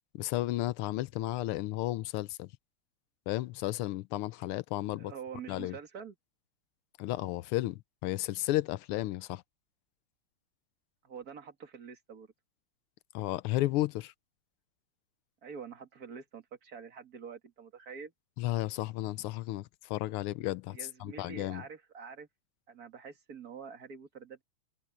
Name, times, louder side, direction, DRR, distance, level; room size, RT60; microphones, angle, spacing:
voice 1, 0.1-2.5 3.3-5.1 5.5-5.8 7.0-9.4 13.1-14.1 18.4-21.6, left 16 dB, 85° left, 1.5 m, -33 dB
voice 2, 5.0-6.1 11.0-12.3 15.4-18.1 20.7-22.3 22.7-24.4, right 6 dB, 45° right, 2.4 m, -46 dB
omnidirectional pair, 2.4 m